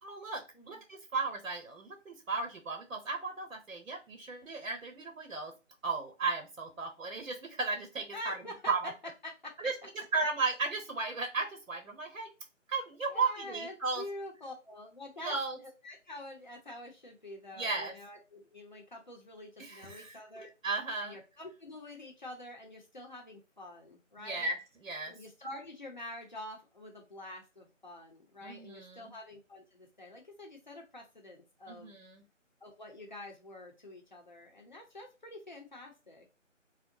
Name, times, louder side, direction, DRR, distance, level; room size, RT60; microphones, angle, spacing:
voice 1, 0.0-5.5 5.8-8.9 9.6-9.7 10.1-12.3 12.7-14.0 15.2-15.6 17.5-17.9 19.6-21.2 24.2-25.1 28.4-29.1 31.7-32.2, right 4 dB, 90° right, 4 dB, 0.9 m, -35 dB
voice 2, 8.1-8.7 9.2-9.5 13.1-15.3 15.8-20.5 21.0-24.5 25.1-32.0 32.6-36.3, left 1 dB, 35° left, 1 dB, 0.6 m, -46 dB
2.6 x 2.0 x 2.6 m, 0.30 s
figure-of-eight pair, 160°, 39 cm